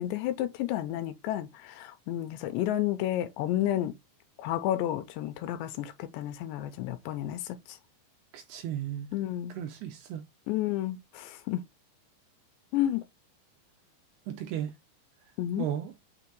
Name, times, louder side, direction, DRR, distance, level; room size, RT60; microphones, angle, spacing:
voice 1, 0.0-3.9 4.4-7.8 9.1-9.5 10.5-11.6 12.7-13.0 15.4-15.7, left 13 dB, 80° left, 2.8 m, -31 dB
voice 2, 8.3-9.1 9.6-10.2 14.3-14.7 15.6-15.9, right 10 dB, 75° right, 2.5 m, -35 dB
6.9 x 3.0 x 4.6 m
omnidirectional pair, 5.3 m